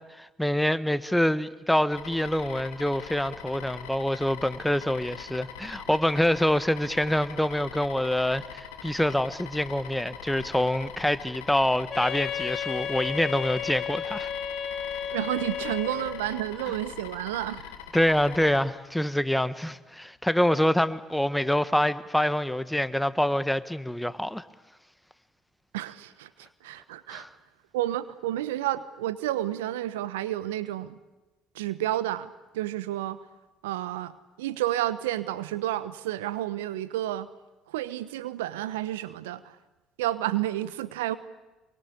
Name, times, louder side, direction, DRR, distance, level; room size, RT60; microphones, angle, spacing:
voice 1, 0.1-14.3 17.9-24.4 27.1-27.3, left 1 dB, 5° left, 1.4 m, -26 dB
sound 1, 1.9-18.6, left 8 dB, 80° left, 2.6 m, -43 dB
Wind instrument woodwind instrument, 11.9-16.3, left 8 dB, 50° left, 3.9 m, -33 dB
voice 2, 15.1-17.6 25.7-27.3 27.7-31.0 31.5-33.2 33.6-37.3 37.7-39.6 40.0-41.2, right 13 dB, 80° right, 1.1 m, -31 dB
26.5 x 24.0 x 8.4 m
hypercardioid pair, 60°, 0 cm